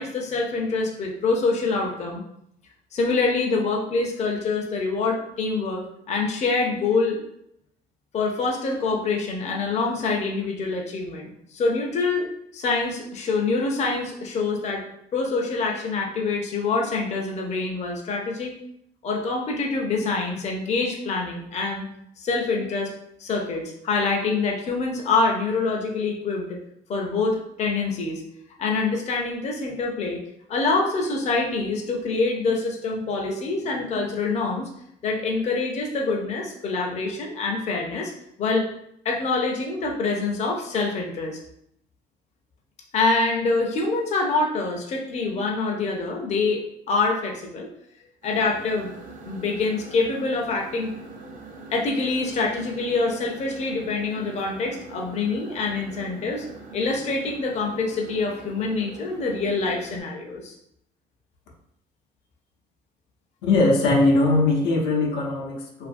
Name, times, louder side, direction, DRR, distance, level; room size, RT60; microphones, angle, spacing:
voice 1, 0.0-2.2 2.9-7.2 8.1-12.3 12.5-14.8 15.1-18.5 19.0-21.9 22.2-22.9 23.2-26.6 26.9-28.2 28.6-30.2 30.5-34.7 35.0-38.1 38.4-38.7 39.0-41.4 42.9-47.7 48.2-48.9 49.2-50.9 51.7-56.5 56.7-60.5, left 3 dB, 40° left, 0 dB, 0.5 m, -25 dB
sound 1, 48.2-60.0, right 3 dB, 55° right, 0.6 m, -42 dB
voice 2, 63.4-65.9, left 2 dB, 85° left, -2 dB, 0.6 m, -20 dB
2.6 x 2.5 x 2.5 m, 0.73 s
cardioid pair, 110°, 17 cm